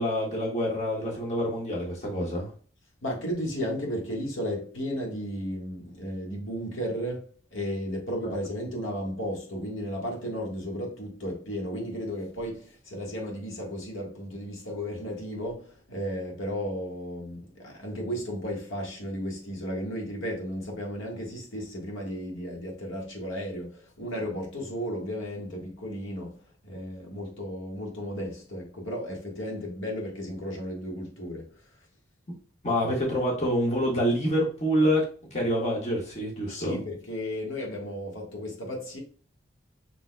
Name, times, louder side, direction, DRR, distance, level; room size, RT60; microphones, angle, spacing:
voice 1, 0.0-2.5 32.6-35.0 35.3-36.8, equal, 35° left, 1.3 m, -26 dB
voice 2, 3.0-31.7 36.5-39.0, equal, 90° left, 1.5 m, -34 dB
6.0 x 3.9 x 2.2 m
head